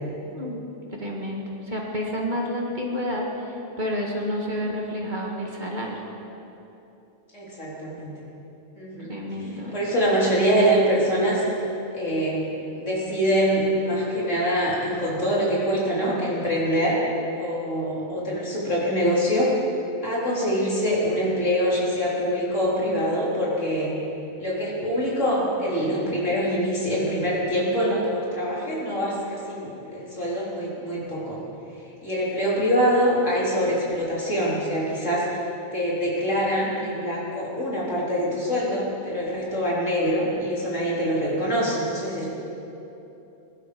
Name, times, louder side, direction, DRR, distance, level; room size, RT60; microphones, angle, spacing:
voice 1, 0.9-6.0 9.0-9.9, equal, 35° right, -1 dB, 1.9 m, -30 dB
voice 2, 7.3-8.1 8.8-9.1 9.7-11.4 11.9-17.0 17.4-19.5 20.0-23.9 24.4-31.4 32.0-35.3 35.7-42.3, equal, 65° left, -6 dB, 4.0 m, -24 dB
21.0 x 12.0 x 5.3 m, 3.0 s
omnidirectional pair, 1.4 m